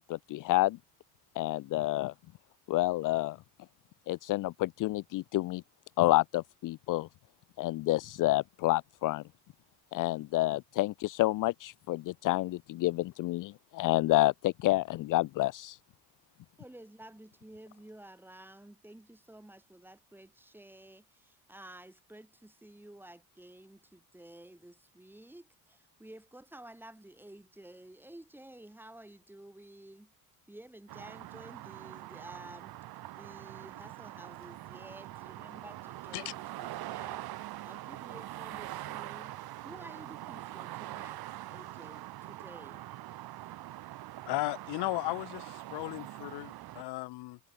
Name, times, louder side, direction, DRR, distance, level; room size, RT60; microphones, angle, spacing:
voice 1, 0.1-0.8 1.4-2.1 2.7-3.4 4.1-5.6 6.0-7.1 7.6-9.2 9.9-15.8, left 18 dB, 55° left, 0.6 m, -29 dB
voice 2, 16.6-30.1 30.5-32.7 33.2-37.3 37.6-39.3 39.6-42.8, right 1 dB, 5° right, 6.6 m, -52 dB
sound 1, 30.9-46.8, right 15 dB, 65° right, 5.0 m, -43 dB
voice 3, 44.3-47.4, left 21 dB, 85° left, 2.3 m, -35 dB
cardioid pair, 145°, 39 cm